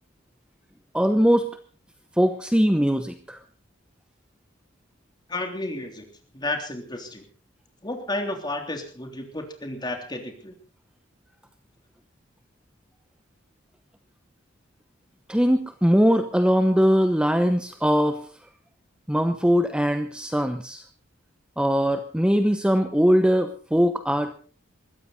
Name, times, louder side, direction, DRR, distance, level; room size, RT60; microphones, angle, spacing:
voice 1, 0.9-1.6 2.2-3.4 15.3-18.3 19.1-20.8 21.6-24.3, equal, 5° right, 8 dB, 0.9 m, -21 dB
voice 2, 5.3-6.1 6.3-7.2 7.8-10.5, left 2 dB, 20° left, 4 dB, 3.4 m, -32 dB
21.5 x 15.0 x 4.2 m, 0.40 s
head